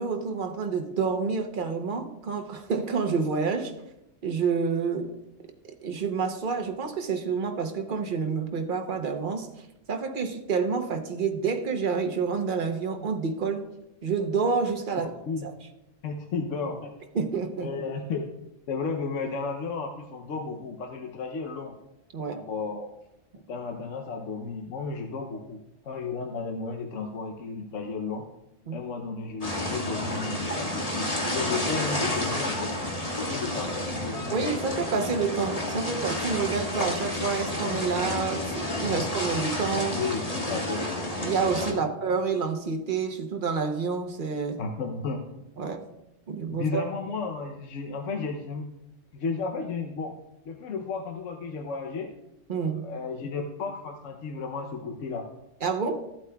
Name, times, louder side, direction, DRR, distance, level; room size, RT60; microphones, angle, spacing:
voice 1, 0.0-3.7 4.2-5.2 5.6-9.5 9.9-13.7 14.0-15.1 15.4-15.5 17.1-17.7 22.1-22.5 28.7-28.8 34.3-40.0 41.2-44.6 45.6-45.8 46.3-46.8 52.5-52.8 55.6-56.1, right 5 dB, 45° right, 5 dB, 0.9 m, -28 dB
voice 2, 15.0-15.5 16.0-16.9 17.6-18.3 18.7-21.8 22.2-22.9 23.5-28.3 28.7-32.7 33.2-34.5 38.8-39.1 39.7-40.9 41.7-42.0 44.6-45.2 46.5-48.7 49.1-50.2 50.4-52.1 52.5-55.3, left 4 dB, 75° left, 3 dB, 1.1 m, -33 dB
sound 1, 29.4-41.7, left 1 dB, 30° left, 1.5 m, -30 dB
15.0 x 8.2 x 2.3 m, 0.89 s
omnidirectional pair, 1.3 m